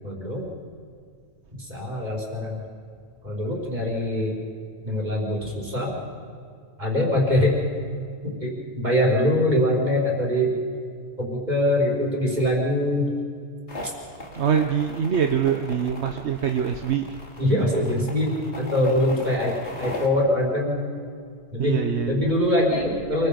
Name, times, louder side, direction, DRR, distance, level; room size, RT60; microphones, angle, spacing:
voice 1, 0.0-0.5 1.5-2.6 3.2-4.4 4.8-6.0 6.8-7.6 8.2-10.5 11.2-13.1 13.8-13.9 17.4-20.8 21.5-23.3, left 1 dB, 40° right, -3 dB, 5.0 m, -23 dB
sound 1, 13.7-20.1, left 1 dB, 80° left, 2.7 m, -38 dB
voice 2, 14.3-17.2 21.6-22.3, right 8 dB, 75° right, 6 dB, 1.2 m, -24 dB
28.5 x 22.0 x 5.3 m, 2.2 s
omnidirectional pair, 1.1 m